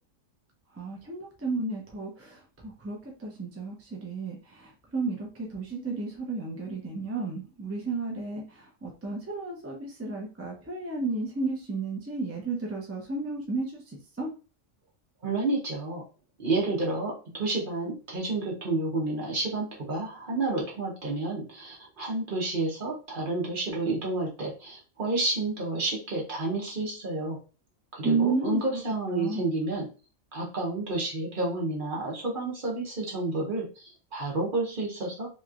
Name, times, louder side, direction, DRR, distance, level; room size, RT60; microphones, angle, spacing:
voice 1, 0.7-14.3 28.0-28.8 29.1-29.4, right 3 dB, 20° right, -1 dB, 0.3 m, -33 dB
voice 2, 15.2-16.0 16.4-27.4 27.9-29.9 30.3-35.3, right 2 dB, 45° right, -2 dB, 1.0 m, -30 dB
3.1 x 3.0 x 2.4 m, 0.34 s
omnidirectional pair, 1.4 m